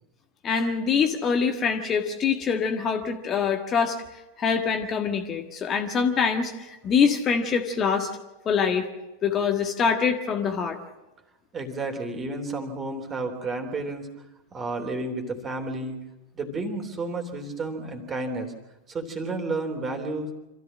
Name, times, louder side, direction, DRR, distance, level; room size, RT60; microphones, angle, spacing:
voice 1, 0.4-4.0 4.4-8.1 8.4-8.9 9.2-10.8, left 6 dB, 25° left, 4 dB, 1.6 m, -24 dB
voice 2, 11.5-14.1 14.5-16.0 16.3-18.5 18.9-20.3, right 2 dB, 20° right, 5 dB, 3.3 m, -31 dB
26.5 x 14.5 x 7.5 m, 1.0 s
figure-of-eight pair, 90°, 0 cm